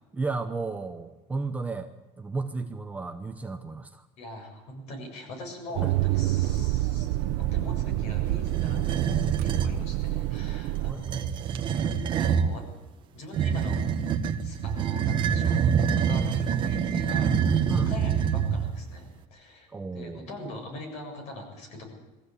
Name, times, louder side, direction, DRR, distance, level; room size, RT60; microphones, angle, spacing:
voice 1, 0.1-1.9 2.2-4.1 5.8-5.9 10.9-11.2 17.7-17.9 19.7-20.5, right 3 dB, 10° right, 6 dB, 0.8 m, -33 dB
voice 2, 4.2-7.1 7.4-11.2 12.2-12.6 13.1-13.8 14.4-15.6 16.1-17.4 17.7-19.7 19.9-21.8, left 2 dB, 55° left, 3 dB, 7.4 m, -42 dB
sound 1, 5.8-10.9, right 15 dB, 75° right, 0.8 m, -27 dB
sound 2, 8.5-9.8 10.9-12.5 13.3-18.8, right 7 dB, 35° right, 1.4 m, -26 dB
22.0 x 15.0 x 8.5 m, 1.2 s
cardioid pair, 175°, 14 cm